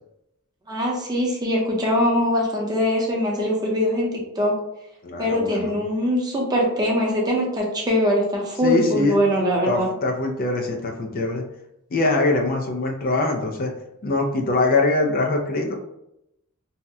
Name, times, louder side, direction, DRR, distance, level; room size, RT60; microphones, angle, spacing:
voice 1, 0.7-4.1 4.4-4.6 5.2-9.9, equal, 20° right, -2 dB, 0.7 m, -22 dB
voice 2, 5.0-5.8 8.6-9.2 9.7-11.5 11.9-13.7 14.0-15.7, left 2 dB, 45° left, 2 dB, 0.4 m, -23 dB
2.7 x 2.1 x 3.4 m, 0.83 s
head